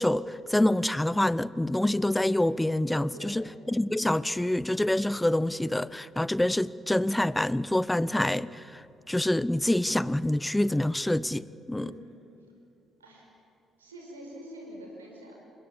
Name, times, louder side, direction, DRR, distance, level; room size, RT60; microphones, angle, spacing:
voice 1, 0.0-8.8 9.1-11.9, left 1 dB, 10° left, 19 dB, 0.6 m, -26 dB
voice 2, 3.1-3.5 11.7-12.2 13.0-13.3 13.8-15.4, equal, 85° right, 0 dB, 5.4 m, -45 dB
28.5 x 23.5 x 7.4 m, 2.8 s
figure-of-eight pair, 45°, 0 cm